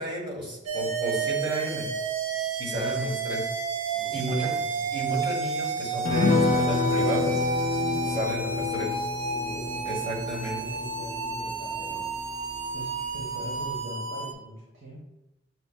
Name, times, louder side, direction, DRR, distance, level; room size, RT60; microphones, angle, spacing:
voice 1, 0.0-1.9 2.6-3.6 4.1-4.6 4.9-7.4 8.1-9.0 9.8-10.8, right 1 dB, 25° right, -2 dB, 1.1 m, -32 dB
sound 1, 0.7-14.3, right 4 dB, 85° right, 0.5 m, -31 dB
sound 2, 1.7-8.2, right 3 dB, 45° right, 0.7 m, -48 dB
voice 2, 3.9-5.0 7.8-8.9 9.3-10.2 10.5-12.1 12.7-15.0, right 1 dB, 70° right, -5 dB, 1.2 m, -42 dB
sound 3, 6.1-12.8 13.1-13.2 13.6-13.8, left 4 dB, 40° left, 0.4 m, -29 dB
6.8 x 2.9 x 2.2 m, 0.92 s
head